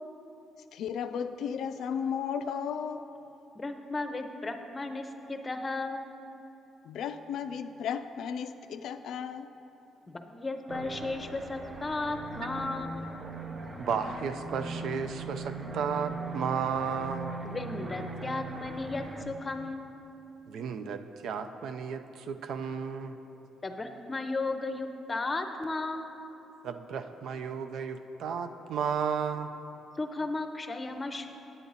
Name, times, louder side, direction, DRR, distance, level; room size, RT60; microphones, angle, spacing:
voice 1, 0.7-3.0 6.8-9.5, left 7 dB, 75° left, 10 dB, 0.3 m, -34 dB
voice 2, 3.5-6.1 10.1-13.1 17.4-19.9 23.6-26.2 30.0-31.3, left 2 dB, 25° left, 7 dB, 0.6 m, -35 dB
sound 1, 10.7-19.3, right 3 dB, 30° right, 0.8 m, -40 dB
voice 3, 13.8-17.4 20.5-23.2 26.6-29.5, right 6 dB, 75° right, 9 dB, 0.4 m, -33 dB
9.0 x 8.2 x 4.0 m, 3.0 s
cardioid pair, 90°, 0 cm